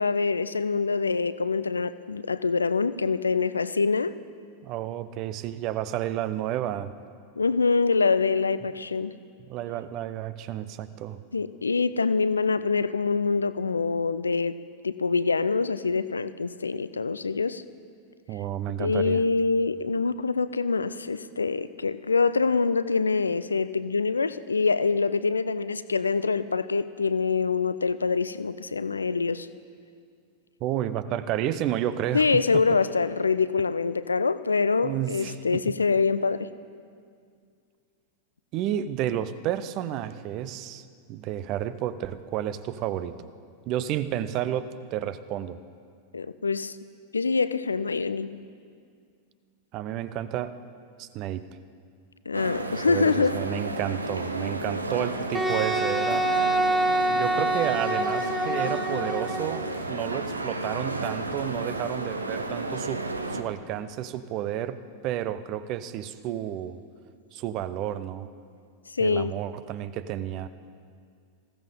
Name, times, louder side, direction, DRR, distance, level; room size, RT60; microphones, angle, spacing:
voice 1, 0.0-4.1 7.4-9.1 11.3-17.6 18.8-29.5 32.1-36.5 46.1-46.8 47.1-48.4 52.3-53.4 68.9-69.4, left 4 dB, 75° left, 15 dB, 0.5 m, -25 dB
voice 2, 4.6-6.9 9.5-11.2 18.3-19.2 30.6-32.6 34.8-35.6 38.5-43.3 43.7-45.6 49.7-50.5 51.0-51.4 52.8-56.3 57.1-63.0 63.3-64.8 65.0-66.8 67.3-68.3 69.0-70.5, right 11 dB, 40° right, 14 dB, 0.7 m, -31 dB
sound 1, 52.3-63.4, right 2 dB, 80° right, 0.8 m, -32 dB
Wind instrument woodwind instrument, 55.3-59.6, right 1 dB, 5° right, 0.8 m, -26 dB
20.0 x 15.5 x 3.8 m, 2.2 s
figure-of-eight pair, 90°, 0 cm